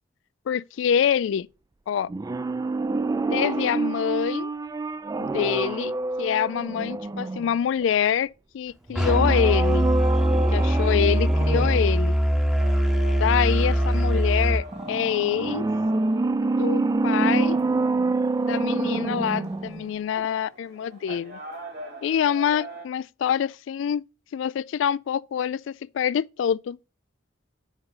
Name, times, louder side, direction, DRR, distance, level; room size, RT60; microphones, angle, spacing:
voice 1, 0.5-1.5 1.9-2.1 3.3-4.5 5.2-5.9 6.2-8.3 8.5-9.9 10.5-12.1 13.2-15.7 16.4-17.6 18.4-21.4 22.0-24.0 24.3-26.8, left 8 dB, 70° left, 0.3 m, -25 dB
sound 1, 2.1-7.8 8.9-11.9 14.7-19.9 20.2-20.3, right 3 dB, 20° right, 0.3 m, -27 dB
Musical instrument, 9.0-14.6, equal, 5° right, 0.8 m, -22 dB
sound 2, 12.6-22.8, left 1 dB, 60° right, 2.1 m, -42 dB
8.1 x 5.4 x 3.7 m
head